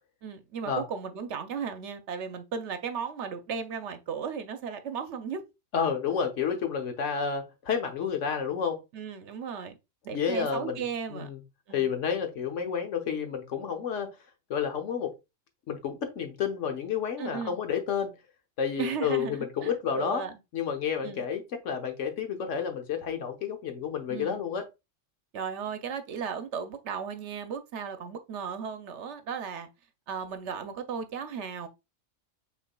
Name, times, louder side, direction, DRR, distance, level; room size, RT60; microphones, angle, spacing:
voice 1, 0.2-5.4 8.9-9.8 10.0-11.3 11.7-11.9 17.2-17.6 18.8-20.3 21.0-21.2 24.1-24.4 25.3-29.7 30.1-31.7, right 6 dB, 65° right, 0.9 m, -35 dB
voice 2, 5.7-8.8 10.1-10.8 11.1-11.4 11.7-14.1 14.5-15.1 15.7-18.2 18.6-20.2 20.5-24.6, left 7 dB, 70° left, 1.2 m, -30 dB
5.8 x 3.6 x 2.2 m
omnidirectional pair, 1.3 m